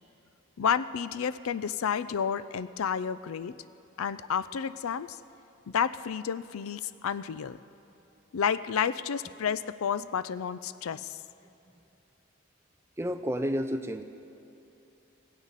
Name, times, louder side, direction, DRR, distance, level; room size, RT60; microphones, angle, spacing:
voice 1, 0.6-3.6 4.0-5.2 5.7-7.6 8.3-11.2, left 7 dB, 90° left, 16 dB, 0.4 m, -30 dB
voice 2, 13.0-14.0, equal, 10° right, 8 dB, 0.5 m, -31 dB
18.0 x 16.5 x 4.1 m, 2.9 s
head